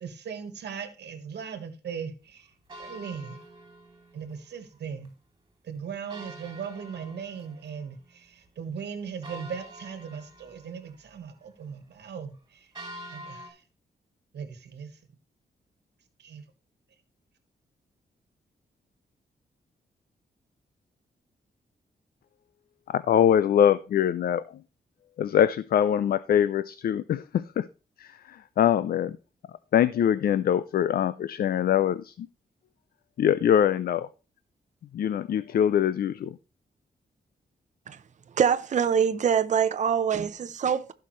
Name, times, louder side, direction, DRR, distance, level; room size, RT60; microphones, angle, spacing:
voice 1, 0.0-2.5 2.8-3.4 4.1-5.1 5.7-12.6 13.1-13.6 14.3-14.9 16.2-16.4, right 7 dB, 80° right, 1.4 m, -38 dB
sound 1, 2.7-4.4 4.7-4.8 5.0-5.1 6.1-8.0 8.4-8.5 9.2-11.0 12.7-13.5, right 1 dB, 25° right, 2.9 m, -45 dB
voice 2, 22.9-24.4 25.2-27.7 28.0-29.2 29.7-32.3 33.2-34.1 34.9-36.4, left 9 dB, 60° left, 0.4 m, -23 dB
voice 3, 38.4-40.9, right 7 dB, 45° right, 0.7 m, -24 dB
15.5 x 5.7 x 3.1 m
wide cardioid pair, 155°, 17 cm